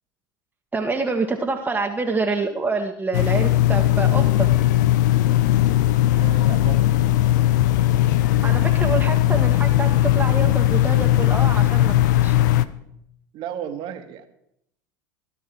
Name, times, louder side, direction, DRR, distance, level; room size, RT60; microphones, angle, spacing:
voice 1, 0.7-4.5 8.4-11.9 12.2-12.4, right 3 dB, 15° right, 2 dB, 1.7 m, -26 dB
sound 1, 3.1-12.7, left 14 dB, 70° left, 0.8 m, -18 dB
voice 2, 6.2-7.0 13.3-14.3, right 9 dB, 55° right, 7 dB, 1.9 m, -34 dB
17.0 x 12.0 x 4.7 m, 0.75 s
hypercardioid pair, 80°, 10 cm